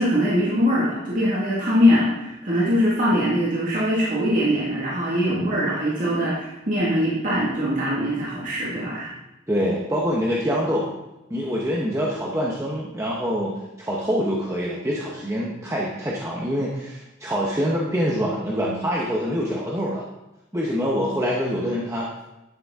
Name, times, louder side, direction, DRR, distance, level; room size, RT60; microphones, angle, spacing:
voice 1, 0.0-9.1, equal, 40° right, -6 dB, 1.8 m, -22 dB
voice 2, 5.3-5.6 9.5-10.9 11.3-20.1 20.5-22.1, equal, 15° right, -4 dB, 0.9 m, -25 dB
11.0 x 6.8 x 3.6 m, 0.97 s
head